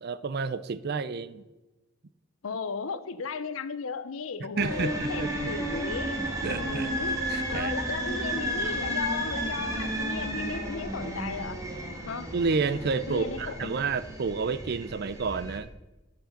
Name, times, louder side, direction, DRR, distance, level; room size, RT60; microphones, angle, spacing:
voice 1, 0.0-1.4 4.6-5.5 6.4-6.9 7.3-7.7 12.3-15.7, right 4 dB, 55° right, 0.5 m, -30 dB
voice 2, 2.4-6.2 6.5-12.3 13.1-13.8, left 5 dB, 85° left, 0.6 m, -36 dB
sound 1, 4.6-15.6, right 1 dB, 15° right, 1.6 m, -33 dB
11.5 x 5.1 x 6.5 m
head